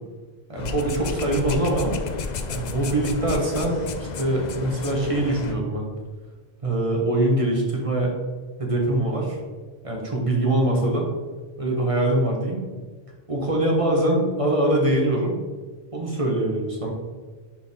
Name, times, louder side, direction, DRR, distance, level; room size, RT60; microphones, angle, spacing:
voice 1, 0.5-1.9 2.5-3.9 4.2-5.9 6.6-8.1 8.6-9.4 9.8-11.1 11.6-12.6 13.3-15.4 15.9-16.9, right 1 dB, 35° right, -1 dB, 1.2 m, -23 dB
sound 1, 0.6-5.5, left 5 dB, 55° left, 0.6 m, -32 dB
6.2 x 4.8 x 3.6 m, 1.4 s
omnidirectional pair, 1.1 m